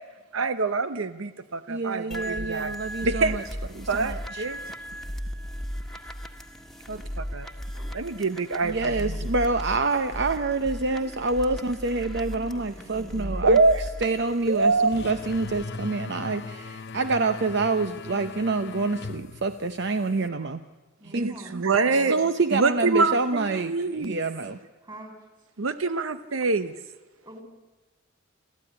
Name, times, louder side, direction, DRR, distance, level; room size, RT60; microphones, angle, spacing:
voice 1, 0.3-2.7 3.0-3.4 3.9-4.6 6.9-7.5 7.9-9.2 13.4-13.8 14.5-14.9 21.2-21.3 21.6-22.2 22.5-24.2 25.6-26.7, right 3 dB, 90° right, 12 dB, 0.9 m, -25 dB
voice 2, 1.7-3.4 3.8-4.4 8.6-13.6 14.0-20.6 21.1-21.3 22.1-24.6, right 3 dB, 60° right, 9 dB, 0.8 m, -27 dB
sound 1, 2.1-15.6, equal, ahead, 1.6 m, -36 dB
voice 3, 12.3-13.3 21.0-22.2 24.8-25.2 27.2-27.4, right 1 dB, 25° right, 6 dB, 4.0 m, -44 dB
sound 2, 14.9-20.3, left 4 dB, 60° left, 0.7 m, -39 dB
28.5 x 14.0 x 10.0 m, 1.2 s
head